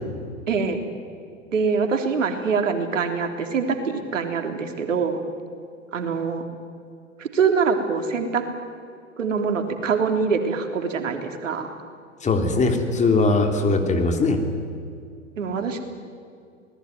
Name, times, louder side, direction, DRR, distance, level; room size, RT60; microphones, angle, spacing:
voice 1, 0.5-0.8 1.5-5.2 5.9-6.4 7.2-8.4 9.2-11.7 15.4-15.8, right 5 dB, 70° right, 5 dB, 3.5 m, -24 dB
voice 2, 12.2-14.4, left 3 dB, 20° left, 4 dB, 3.3 m, -20 dB
28.5 x 19.0 x 9.4 m, 2.3 s
figure-of-eight pair, 105°, 39 cm